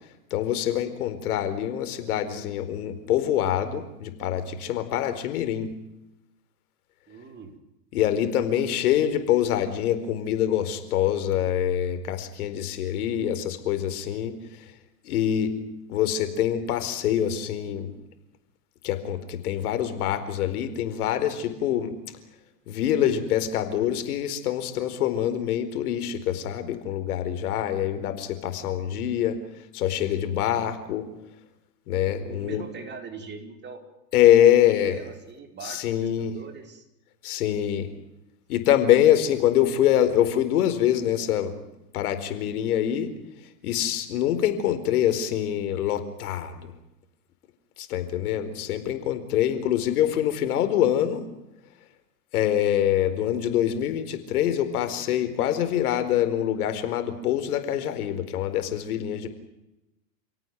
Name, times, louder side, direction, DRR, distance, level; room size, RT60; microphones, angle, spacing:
voice 1, 0.3-5.7 7.9-14.3 15.0-15.5 15.9-17.9 18.8-21.9 22.7-29.4 29.7-31.0 31.9-32.6 34.1-35.0 35.6-36.4 37.2-37.9 38.5-41.5 41.9-43.1 43.6-46.7 47.8-51.2 52.3-59.3, left 11 dB, 70° left, 10 dB, 4.6 m, -25 dB
voice 2, 7.1-7.5 32.2-33.8 34.4-34.6 34.8-36.8 39.6-40.0, right 5 dB, 25° right, 5 dB, 5.0 m, -41 dB
29.0 x 18.0 x 9.4 m, 0.90 s
hypercardioid pair, 130°, 46 cm